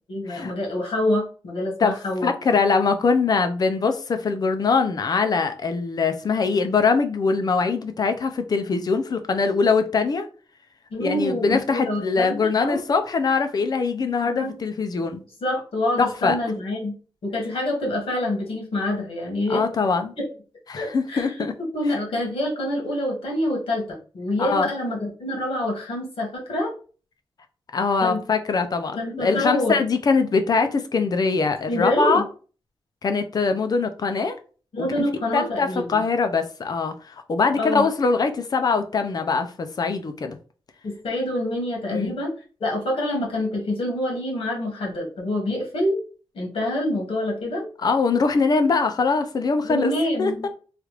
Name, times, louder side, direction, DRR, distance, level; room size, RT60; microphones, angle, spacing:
voice 1, 0.1-2.3 10.9-12.8 14.2-14.6 15.4-16.9 17.2-19.6 20.2-20.3 20.8-26.7 28.0-28.2 28.9-29.8 31.7-32.2 34.7-36.0 37.6-37.9 40.8-42.3 42.6-46.0 46.3-47.6 49.6-50.5, left 1 dB, 65° left, -1 dB, 1.4 m, -26 dB
voice 2, 2.2-10.3 11.0-15.2 16.0-16.4 19.5-20.1 20.7-21.5 24.4-24.7 27.7-32.2 33.0-34.4 34.8-35.1 35.3-40.4 41.9-42.2 47.8-49.9 50.2-50.5, left 4 dB, 40° left, 8 dB, 0.4 m, -22 dB
3.3 x 2.4 x 3.0 m, 0.38 s
wide cardioid pair, 140°, 10 cm